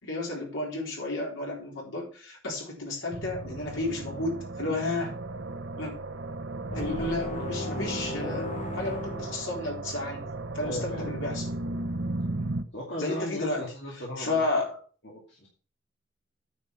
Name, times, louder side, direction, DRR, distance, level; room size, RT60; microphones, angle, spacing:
voice 1, 0.0-5.1 5.8-5.9 6.7-8.5 8.7-11.5 13.0-13.6 14.2-14.8, left 2 dB, 75° left, -2 dB, 4.1 m, -32 dB
sound 1, 3.1-12.6, right 2 dB, 60° right, 0.7 m, -35 dB
sound 2, 6.7-10.0, left 2 dB, 35° left, 1.2 m, -36 dB
voice 2, 10.6-11.1 12.7-14.5 15.0-15.5, left 1 dB, 55° left, -4 dB, 2.4 m, -36 dB
9.5 x 5.5 x 5.9 m, 0.39 s
head